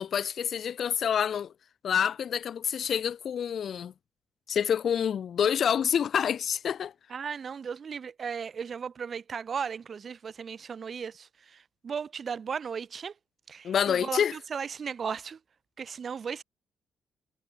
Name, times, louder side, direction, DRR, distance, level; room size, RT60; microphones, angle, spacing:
voice 1, 0.0-1.5 1.8-3.9 4.5-6.9 13.6-14.3, left 8 dB, 60° left, 0.4 m, -27 dB
voice 2, 7.1-13.1 13.5-15.4 15.8-16.4, right 6 dB, 45° right, 2.2 m, -36 dB
cardioid pair, 90°, 0 cm